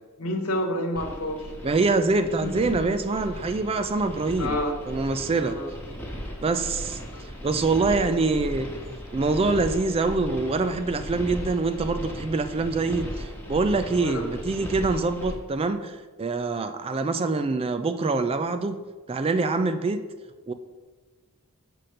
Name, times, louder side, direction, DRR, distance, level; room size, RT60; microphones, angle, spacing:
voice 1, 0.2-1.5 2.4-2.9 4.4-4.8 5.4-5.7 7.1-7.2 13.9-14.3, left 1 dB, 80° left, 3 dB, 1.2 m, -29 dB
sound 1, 1.0-15.3, equal, 10° left, 1.2 m, -37 dB
voice 2, 1.6-4.6 4.9-5.6 6.4-7.0 7.4-8.7 9.1-18.8 19.1-20.0 20.5-20.6, right 3 dB, 25° right, 9 dB, 0.3 m, -25 dB
6.4 x 4.2 x 6.4 m, 1.3 s
head